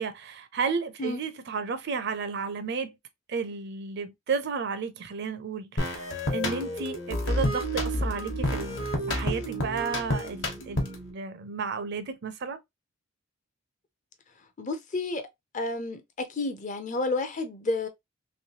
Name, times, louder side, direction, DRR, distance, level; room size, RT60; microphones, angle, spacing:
voice 1, 0.0-2.9 3.3-12.6, right 5 dB, 50° right, 0.5 m, -33 dB
sound 1, 5.8-11.1, left 1 dB, 55° left, 1.1 m, -30 dB
voice 2, 14.6-15.2 15.5-17.9, left 2 dB, 35° left, 0.5 m, -30 dB
3.1 x 3.0 x 2.8 m
head